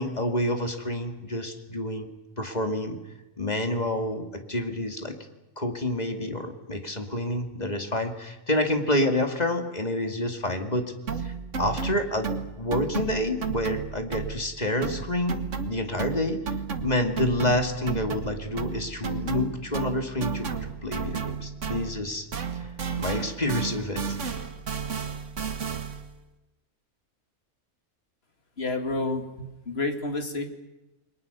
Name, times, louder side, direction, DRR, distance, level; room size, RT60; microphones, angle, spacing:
voice 1, 0.0-2.1 2.4-3.0 3.4-5.2 5.6-16.5 16.8-22.3 22.6-22.7 23.0-24.0, left 1 dB, 25° left, 5 dB, 2.5 m, -28 dB
sound 1, 11.1-14.5 14.8-22.1 22.3-26.1, right 5 dB, 55° right, 1.8 m, -33 dB
voice 2, 28.6-30.4, left 2 dB, 45° left, 5 dB, 2.6 m, -29 dB
29.5 x 22.0 x 6.9 m, 1.0 s
omnidirectional pair, 1.6 m